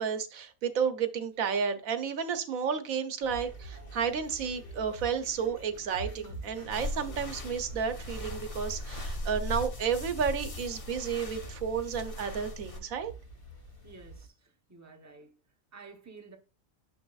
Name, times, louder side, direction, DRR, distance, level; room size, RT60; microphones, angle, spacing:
voice 1, 0.0-13.1, right 6 dB, 75° right, 1.2 m, -32 dB
sound 1, 3.2-14.3, right 3 dB, 55° left, 2.1 m, -46 dB
sound 2, 6.7-12.8, left 1 dB, 35° left, 0.7 m, -39 dB
voice 2, 13.8-15.4 15.7-16.4, right 4 dB, 15° right, 0.7 m, -51 dB
7.7 x 6.2 x 2.4 m
omnidirectional pair, 1.5 m